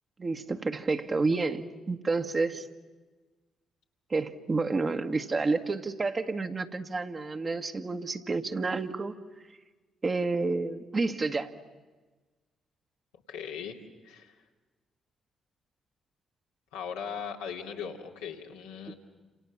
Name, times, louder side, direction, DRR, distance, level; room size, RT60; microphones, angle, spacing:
voice 1, 0.2-2.7 4.1-9.1 10.0-11.5 18.9-19.0, right 3 dB, 40° right, 6 dB, 1.9 m, -30 dB
voice 2, 13.3-13.8 14.0-14.3 16.7-18.9, left 7 dB, 80° left, -1 dB, 2.8 m, -38 dB
29.5 x 27.5 x 7.3 m, 1.3 s
hypercardioid pair, 40°, 0 cm